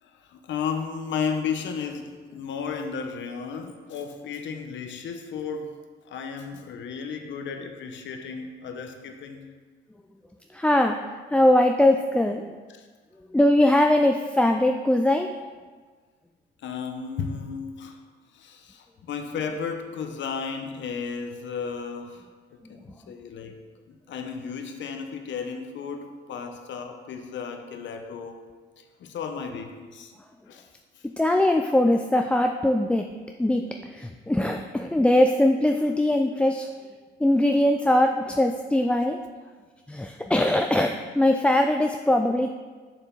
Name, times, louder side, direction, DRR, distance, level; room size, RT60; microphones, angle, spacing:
voice 1, 0.0-5.8 6.0-9.5 12.7-12.9 16.6-18.0 18.3-22.3 22.7-23.6 23.9-28.4 28.8-30.1 30.5-30.7 30.9-31.0 37.5-37.6, left 6 dB, 70° left, 5 dB, 0.9 m, -34 dB
voice 2, 10.5-11.0 11.3-12.4 13.3-15.3 31.2-33.1 33.4-36.7 37.2-39.2 39.9-42.5, left 1 dB, 5° left, 4 dB, 0.3 m, -21 dB
7.0 x 6.6 x 3.9 m, 1.4 s
cardioid pair, 90°, 20 cm